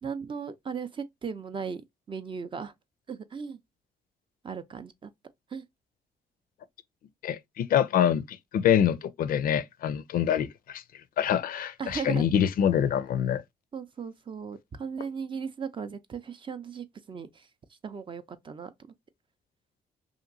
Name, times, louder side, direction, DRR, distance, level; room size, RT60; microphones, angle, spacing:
voice 1, 0.0-2.7 3.1-3.6 4.4-5.1 5.5-5.6 11.8-12.3 13.7-17.5 17.8-18.7, right 6 dB, 30° right, 0.4 m, -37 dB
voice 2, 7.2-10.8 11.2-13.4, left 9 dB, 65° left, 0.4 m, -25 dB
2.8 x 2.5 x 2.6 m
cardioid pair, 95°, 16 cm